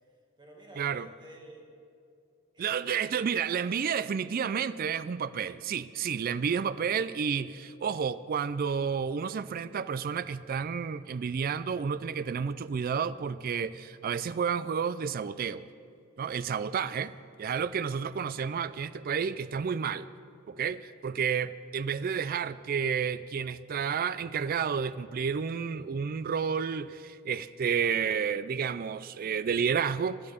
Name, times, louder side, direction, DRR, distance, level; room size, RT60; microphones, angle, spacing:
voice 1, 0.1-1.6 2.5-3.1 3.6-3.9 17.2-17.6, right 1 dB, 20° right, 2.0 m, -53 dB
voice 2, 0.8-1.1 2.6-15.6 16.2-17.1 17.4-20.1 20.5-30.2, right 6 dB, 40° right, 0.3 m, -31 dB
17.0 x 11.0 x 5.1 m
head